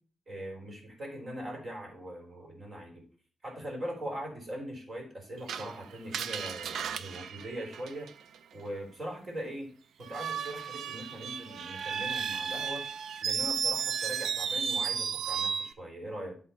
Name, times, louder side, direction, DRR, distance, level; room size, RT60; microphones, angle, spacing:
voice 1, 0.3-3.0 3.4-8.1 8.5-9.7 10.0-12.9 13.2-16.3, equal, 45° right, 0 dB, 3.5 m, -41 dB
Screech, 5.5-8.4 10.0-15.7, right 7 dB, 85° right, 0.4 m, -34 dB
10.0 x 3.8 x 5.7 m, 0.44 s
cardioid pair, 75°, 0 cm